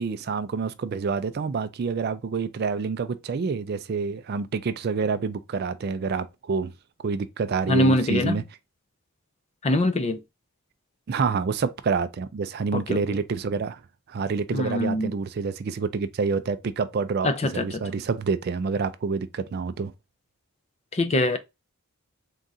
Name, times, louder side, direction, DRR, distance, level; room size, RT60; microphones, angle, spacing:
voice 1, 0.0-6.7 7.0-8.4 11.1-13.8 14.1-17.3 17.5-19.9, right 5 dB, 45° right, 0.3 m, -27 dB
voice 2, 7.7-8.4 9.6-10.2 12.7-13.2 14.5-15.2 17.2-17.8 20.9-21.4, left 1 dB, 30° left, 0.4 m, -23 dB
3.7 x 2.4 x 4.0 m
head